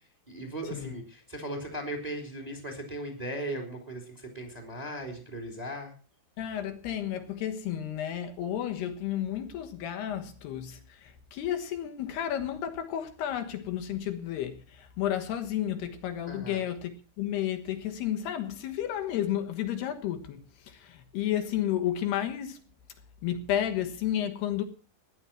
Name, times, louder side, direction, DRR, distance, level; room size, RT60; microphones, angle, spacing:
voice 1, 0.3-5.9 16.2-16.6, right 1 dB, 10° right, 3.0 m, -37 dB
voice 2, 6.4-22.6 23.2-24.6, left 11 dB, 75° left, 3.4 m, -32 dB
15.0 x 11.0 x 5.9 m
omnidirectional pair, 4.9 m